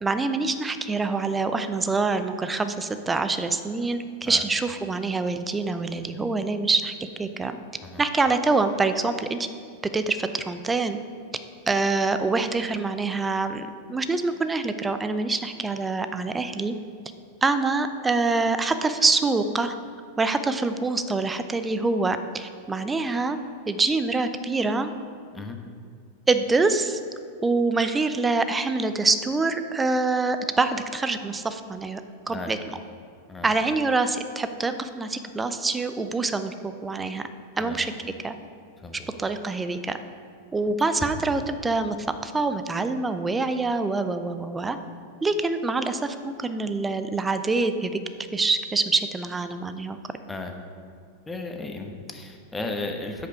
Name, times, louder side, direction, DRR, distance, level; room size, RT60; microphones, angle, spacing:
voice 1, 0.0-7.6 8.0-9.5 9.9-11.0 11.7-16.7 17.4-19.7 20.2-23.4 23.7-24.9 26.3-27.0 27.4-32.0 32.3-32.6 33.4-37.3 37.6-37.9 38.2-38.3 39.2-40.0 40.5-42.0 42.2-44.8 45.2-48.0 48.3-50.0, right 3 dB, 15° right, 10 dB, 0.6 m, -25 dB
voice 2, 37.5-37.9 38.8-39.1 50.3-50.5 51.3-53.3, left 2 dB, 10° left, 3 dB, 1.1 m, -35 dB
10.0 x 8.0 x 5.0 m, 2.1 s
figure-of-eight pair, 90°, 0 cm